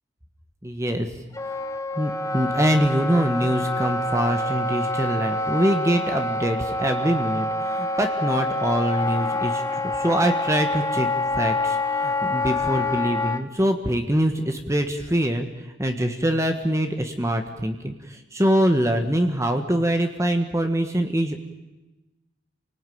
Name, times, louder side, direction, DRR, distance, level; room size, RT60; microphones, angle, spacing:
voice 1, 0.6-1.1 2.0-11.1 11.3-15.5 15.8-21.4, equal, 15° right, 6 dB, 1.5 m, -24 dB
Wind instrument woodwind instrument, 1.3-13.4, left 2 dB, 15° left, 1.1 m, -26 dB
28.0 x 19.0 x 9.4 m, 1.1 s
head